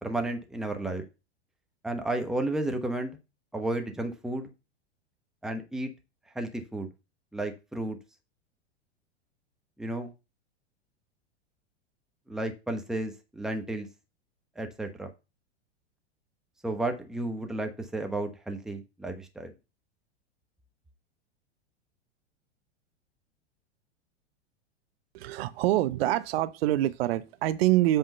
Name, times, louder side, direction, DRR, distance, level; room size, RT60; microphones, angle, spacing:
voice 1, 0.0-1.0 1.8-3.2 3.5-4.5 5.4-5.9 6.3-6.9 7.3-8.0 9.8-10.1 12.3-13.9 14.6-15.1 16.6-19.5, right 1 dB, ahead, 1.0 m, -32 dB
voice 2, 25.1-28.0, right 15 dB, 60° right, 0.7 m, -25 dB
7.8 x 3.7 x 5.5 m
hypercardioid pair, 100°, 34 cm